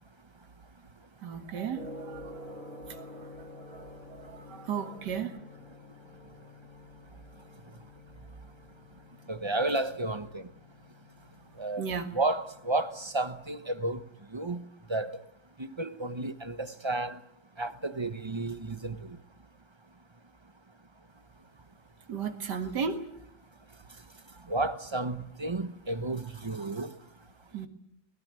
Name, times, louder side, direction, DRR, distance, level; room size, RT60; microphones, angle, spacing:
voice 1, 1.2-5.4 11.8-12.1 22.1-23.0 27.5-27.7, right 6 dB, 70° right, 2.4 m, -36 dB
Gong, 1.7-13.7, left 1 dB, 50° left, 7.1 m, -50 dB
voice 2, 9.3-10.5 11.6-11.8 12.1-14.0 14.3-15.2 15.6-17.2 17.6-19.2 24.5-26.9, right 2 dB, 25° right, 0.7 m, -32 dB
21.5 x 19.5 x 9.6 m
omnidirectional pair, 1.9 m